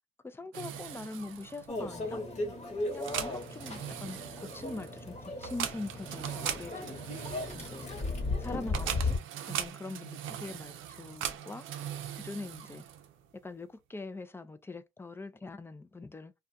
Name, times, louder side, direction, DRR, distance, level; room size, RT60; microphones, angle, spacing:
voice 1, 0.2-2.2 2.9-7.0 7.5-7.9 8.4-9.2 9.5-11.7 12.1-12.8 13.4-16.3, left 3 dB, 10° left, 0.3 m, -43 dB
sound 1, 0.5-13.3, right 10 dB, 80° right, 0.5 m, -40 dB
Microwave oven, 1.7-9.2, left 2 dB, 35° left, 1.0 m, -36 dB
2.4 x 2.2 x 2.6 m
cardioid pair, 90°, 20 cm